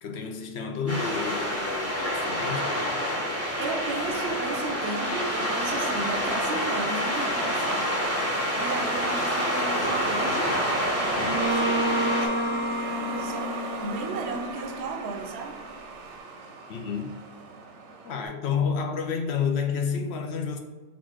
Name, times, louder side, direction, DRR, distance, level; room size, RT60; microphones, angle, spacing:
voice 1, 0.0-2.9 16.7-17.2 18.0-20.6, left 6 dB, 65° left, 0.7 m, -30 dB
Truck, 0.8-18.3, right 4 dB, 85° right, 1.0 m, -38 dB
sound 1, 0.9-12.3, equal, 15° left, 0.7 m, -28 dB
voice 2, 3.6-8.0 8.6-10.6 11.0-15.6, right 3 dB, 65° right, 0.8 m, -35 dB
Bowed string instrument, 11.2-14.9, equal, 45° left, 1.3 m, -29 dB
4.1 x 2.4 x 4.4 m
omnidirectional pair, 1.3 m